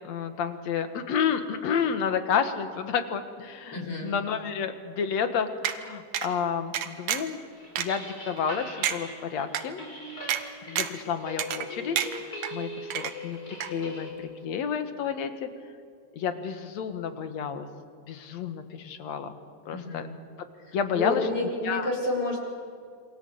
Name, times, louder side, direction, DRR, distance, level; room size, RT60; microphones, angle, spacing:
voice 1, 0.0-7.4 7.8-9.8 10.7-15.5 16.1-17.7 18.1-19.4 19.7-20.1 20.7-21.3 21.6-21.9, left 7 dB, 60° left, 8 dB, 2.6 m, -30 dB
voice 2, 3.7-4.1 19.7-20.1 20.6-22.4, left 2 dB, 45° left, -1 dB, 5.7 m, -30 dB
sound 1, 5.6-5.8 6.1-6.3 6.7-7.3 7.8-7.9 8.4-8.5 8.8-9.0 9.5-9.6 10.3-10.4 10.8-11.0 11.4-11.7 12.0-12.5 12.9-13.4 13.6-13.7, right 10 dB, 80° right, 2.7 m, -29 dB
sound 2, 7.5-14.1, left 1 dB, 25° left, 5.9 m, -41 dB
28.0 x 24.5 x 8.1 m, 2.2 s
omnidirectional pair, 3.6 m